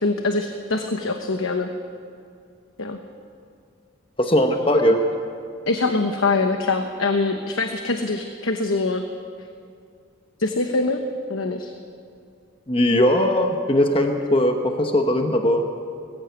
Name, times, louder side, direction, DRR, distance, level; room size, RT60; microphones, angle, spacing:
voice 1, 0.0-1.7 2.8-3.0 5.7-9.1 10.4-11.0 11.3-11.7, left 3 dB, 90° left, 6 dB, 1.1 m, -23 dB
voice 2, 4.2-5.0 12.7-15.6, left 1 dB, 25° left, 4 dB, 1.1 m, -19 dB
20.5 x 15.5 x 8.2 m, 2.4 s
head